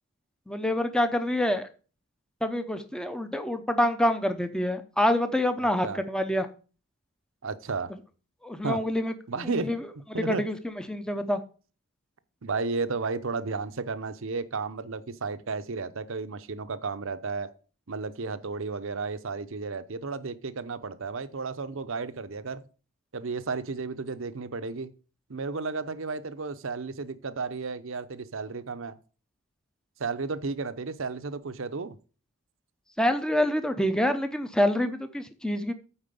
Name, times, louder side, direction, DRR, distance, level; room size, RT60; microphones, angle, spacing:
voice 1, 0.5-1.7 2.4-6.5 8.4-9.1 9.6-9.8 10.3-10.6 10.9-11.4 33.0-35.7, left 1 dB, 5° left, 0.6 m, -26 dB
voice 2, 7.4-7.9 8.6-8.8 9.3-9.7 10.1-10.4 12.4-17.5 17.9-22.6 23.1-24.9 25.3-28.9 30.0-32.0, right 4 dB, 60° right, 0.7 m, -33 dB
8.9 x 4.3 x 6.9 m
head